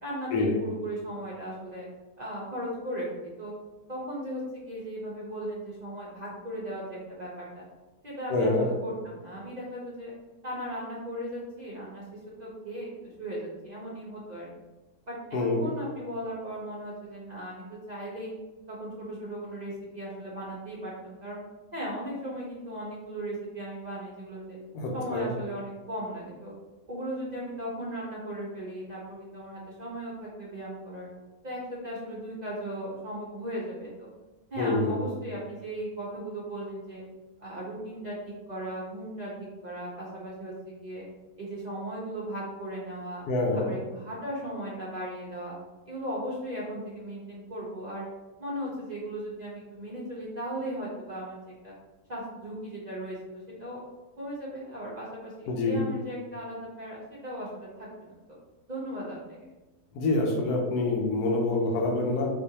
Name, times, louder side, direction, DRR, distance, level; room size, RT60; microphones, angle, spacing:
voice 1, 0.0-1.9 2.2-3.5 3.9-7.6 8.0-10.1 10.4-14.5 15.1-18.3 18.7-21.4 21.7-24.6 24.9-26.5 26.9-31.1 31.4-34.1 34.5-37.0 37.4-41.0 41.4-43.2 43.5-45.6 45.9-48.1 48.4-51.7 52.1-53.8 54.2-58.1 58.7-59.4, right 1 dB, 50° right, -6 dB, 0.5 m, -37 dB
voice 2, 8.3-8.7 15.3-15.6 24.7-25.3 34.6-35.1 43.3-43.7 55.5-55.8 59.9-62.3, left 2 dB, 90° left, 0 dB, 1.2 m, -26 dB
4.4 x 2.5 x 2.8 m, 1.2 s
omnidirectional pair, 1.6 m